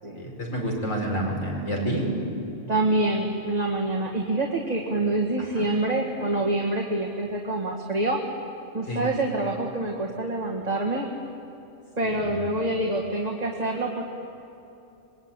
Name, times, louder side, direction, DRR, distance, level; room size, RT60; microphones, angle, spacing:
voice 1, 0.2-2.1 5.6-5.7 8.9-9.0 12.2-12.4, right 1 dB, 85° left, -1 dB, 5.3 m, -29 dB
voice 2, 2.7-8.2 8.7-11.1 12.0-14.0, right 2 dB, 30° right, -1 dB, 2.0 m, -26 dB
26.0 x 22.0 x 9.1 m, 2.9 s
omnidirectional pair, 1.3 m